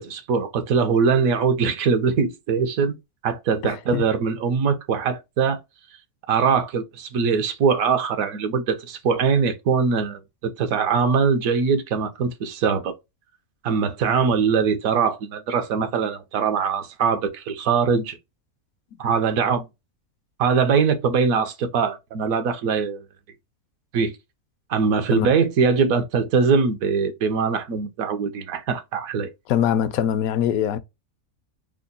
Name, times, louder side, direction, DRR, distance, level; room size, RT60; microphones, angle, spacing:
voice 1, 0.0-2.9 3.2-5.6 6.3-13.0 13.6-18.2 19.0-19.7 20.4-23.0 23.9-24.2 24.7-29.3, right 5 dB, 75° right, 1.1 m, -22 dB
voice 2, 3.6-4.0 25.1-25.3 29.5-30.8, left 9 dB, 75° left, 1.0 m, -23 dB
3.6 x 2.2 x 3.8 m
omnidirectional pair, 1.5 m